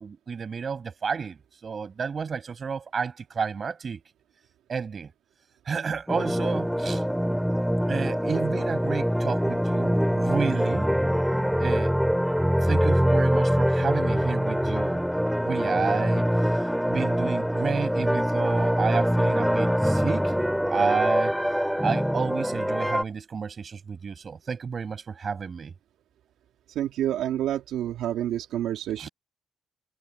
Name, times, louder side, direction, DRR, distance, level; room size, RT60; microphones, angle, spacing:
voice 1, 0.0-1.4 1.6-4.0 4.7-5.1 5.7-7.0 7.9-10.9 11.6-11.9 12.6-15.0 15.4-16.3 16.9-20.3 20.6-21.4 21.8-25.7 29.0-29.1, right 5 dB, 40° right, 5.9 m, -30 dB
sound 1, 6.1-23.0, equal, ahead, 3.0 m, -24 dB
voice 2, 26.7-29.1, right 11 dB, 80° right, 2.7 m, -28 dB
cardioid pair, 90°, 0 cm